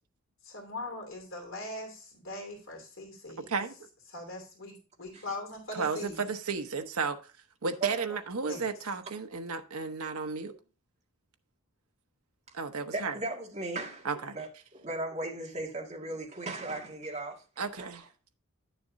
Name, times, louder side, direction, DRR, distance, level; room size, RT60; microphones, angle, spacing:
voice 1, 0.4-3.5 4.1-6.2 8.5-8.7, left 2 dB, 65° left, 2.8 m, -41 dB
voice 2, 5.7-7.2 7.6-10.5 12.5-13.2 14.0-14.4 17.6-18.1, right 4 dB, 80° right, 0.9 m, -33 dB
voice 3, 7.8-8.2 12.9-17.4 17.8-17.9, right 2 dB, 30° right, 1.9 m, -37 dB
10.5 x 6.8 x 2.6 m
head